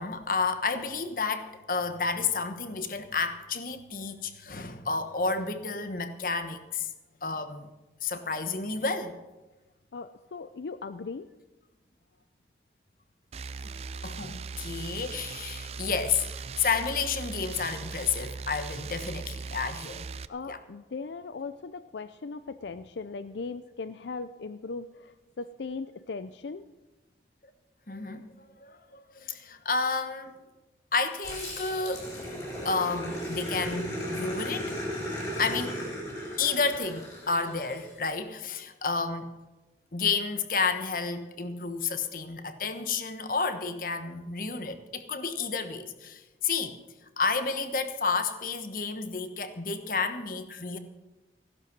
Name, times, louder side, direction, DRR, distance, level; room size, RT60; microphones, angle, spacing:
voice 1, 0.0-6.9 7.2-7.7 8.0-9.2 14.0-20.1 20.5-20.6 27.9-30.3 30.9-32.1 32.6-34.8 35.4-35.8 36.4-39.3 39.9-46.8 47.2-50.8, left 4 dB, 50° left, 1.2 m, -31 dB
voice 2, 9.9-11.3 20.3-26.7, left 4 dB, 80° left, 0.5 m, -38 dB
sound 1, 13.3-20.3, right 4 dB, 35° right, 0.4 m, -39 dB
Growling, 31.2-37.9, equal, 20° left, 4.4 m, -36 dB
15.0 x 11.5 x 6.0 m
head